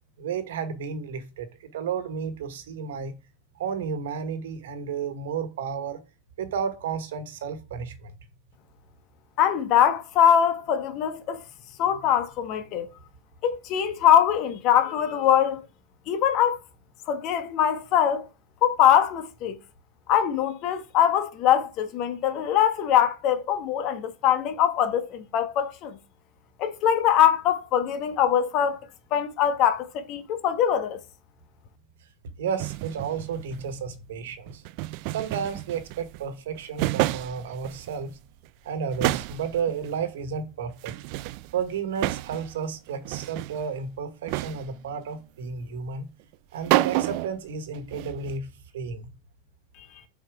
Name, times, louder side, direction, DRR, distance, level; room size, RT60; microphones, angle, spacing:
voice 1, 0.2-3.1 3.6-6.0 6.4-8.1 32.4-34.6 35.1-38.1 38.6-40.9 41.5-46.1 46.5-48.5 48.7-49.1, right 6 dB, 75° right, 1.3 m, -32 dB
voice 2, 9.4-11.4 11.8-12.9 13.4-15.7 16.1-16.6 17.1-18.3 18.6-19.6 20.1-26.0 26.6-28.8 29.1-31.0, left 9 dB, 50° left, 1.1 m, -22 dB
sound 1, 32.6-33.7 34.5-36.2 36.5-38.1 38.4-38.5 38.9-39.9 40.8-42.6 42.9-43.7 44.3-44.9 46.3-46.4 46.6-47.4 47.7-48.3, right 18 dB, 55° right, 0.3 m, -30 dB
6.0 x 4.5 x 4.7 m
hypercardioid pair, 100°, 0 cm